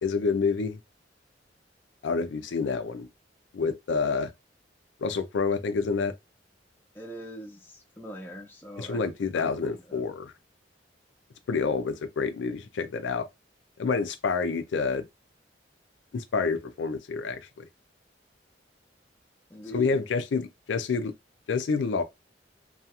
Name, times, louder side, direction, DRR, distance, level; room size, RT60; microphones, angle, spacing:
voice 1, 0.0-0.8 2.0-3.1 3.5-4.3 5.0-6.1 8.8-10.3 11.5-13.3 13.8-15.0 16.1-17.6 19.7-21.1 21.5-22.0, left 4 dB, 80° left, 0.4 m, -28 dB
voice 2, 6.9-9.1 9.3-10.0 19.5-20.0, equal, 10° left, 0.5 m, -42 dB
2.3 x 2.3 x 2.7 m
head